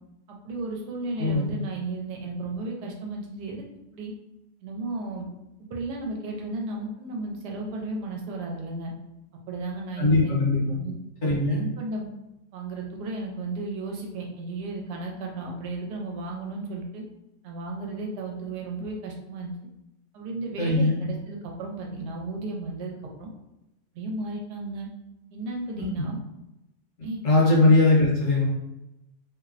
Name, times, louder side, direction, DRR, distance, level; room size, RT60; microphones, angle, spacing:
voice 1, 0.3-3.6 3.9-4.1 4.6-5.3 5.7-8.9 9.3-10.3 10.8-10.9 11.2-12.1 12.5-17.0 17.4-19.5 20.1-23.3 23.9-24.9 25.3-26.2 27.0-27.2 27.5-27.6, right 2 dB, 85° right, 0 dB, 1.2 m, -34 dB
voice 2, 1.2-1.5 10.0-10.8 11.2-11.6 20.6-21.0 25.8-25.9 27.2-28.5, left 2 dB, 60° left, -4 dB, 0.9 m, -20 dB
2.8 x 2.0 x 2.4 m, 0.92 s
omnidirectional pair, 1.7 m